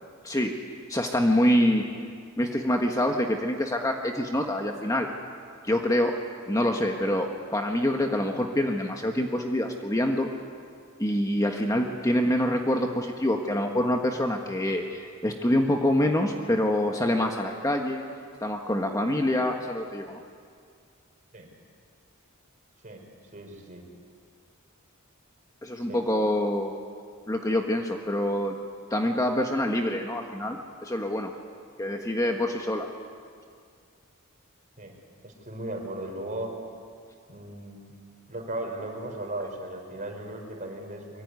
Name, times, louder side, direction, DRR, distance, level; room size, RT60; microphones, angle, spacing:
voice 1, 0.9-1.9 2.4-5.1 5.6-6.1 6.5-10.3 11.0-18.0 18.4-20.2 25.6-26.7 27.3-28.5 28.9-31.3 31.8-32.9, left 1 dB, 15° left, 3 dB, 1.5 m, -26 dB
voice 2, 23.3-23.8 25.8-26.0 34.8-34.9 35.2-36.5 37.3-38.0 38.3-41.2, right 1 dB, 35° right, 3 dB, 4.8 m, -37 dB
24.0 x 23.5 x 9.7 m, 2.2 s
head